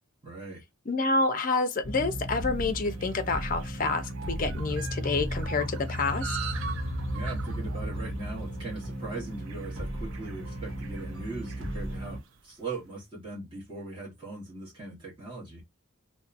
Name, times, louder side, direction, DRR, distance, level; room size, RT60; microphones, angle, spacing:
voice 1, 0.2-0.6 7.1-15.6, right 3 dB, 20° right, 1.0 m, -40 dB
voice 2, 0.9-6.4, left 3 dB, 40° left, 0.4 m, -28 dB
sound 1, 1.8-12.2, equal, 85° right, 1.1 m, -34 dB
sound 2, 2.0-12.6, right 7 dB, 65° right, 0.5 m, -44 dB
2.7 x 2.2 x 2.4 m
head